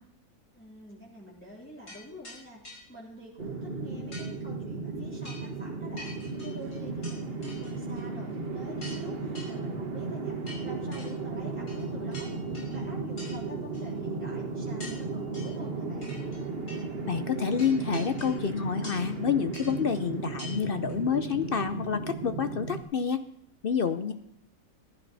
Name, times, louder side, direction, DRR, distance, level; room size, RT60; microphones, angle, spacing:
voice 1, 0.5-2.6 2.9-6.1 6.4-10.4 10.6-12.4 12.7-16.1 24.0-24.1, equal, 5° left, -5 dB, 3.4 m, -47 dB
sound 1, 1.9-2.0 2.2-2.4 2.6-2.8 4.1-4.3 5.2-5.5 6.0-7.2 7.4-8.0 8.3-8.4 8.8-9.0 9.4-9.5 10.5-11.1 11.7-11.9 12.1-12.8 13.2-13.4 13.7-13.8 14.8-15.0 15.3-15.6 16.0-16.4 16.7-16.8 17.6-18.4 18.8-19.1 19.5-19.7 20.4-20.5 20.9-21.0, left 1 dB, 90° left, 5.5 m, -45 dB
sound 2, 3.4-22.8, right 3 dB, 40° right, 1.6 m, -35 dB
voice 2, 17.1-23.2 23.6-24.1, left 7 dB, 65° left, 10 dB, 0.5 m, -28 dB
15.0 x 11.5 x 4.0 m, 0.69 s
omnidirectional pair, 1.6 m